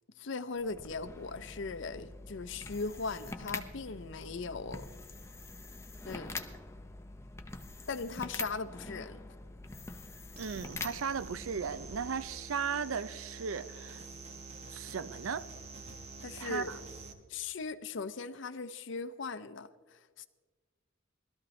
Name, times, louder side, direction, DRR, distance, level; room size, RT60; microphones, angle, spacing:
voice 1, 0.2-4.9 6.1-6.3 7.9-9.2 16.2-16.7 17.3-20.3, left 4 dB, 65° left, 0.6 m, -39 dB
sound 1, 0.6-12.5, left 3 dB, 15° left, 0.6 m, -45 dB
sound 2, 10.3-17.1, right 3 dB, 30° right, 1.2 m, -47 dB
voice 2, 10.4-14.0 14.7-15.5 16.4-16.8, right 6 dB, 80° right, 0.5 m, -36 dB
19.5 x 13.0 x 3.2 m
head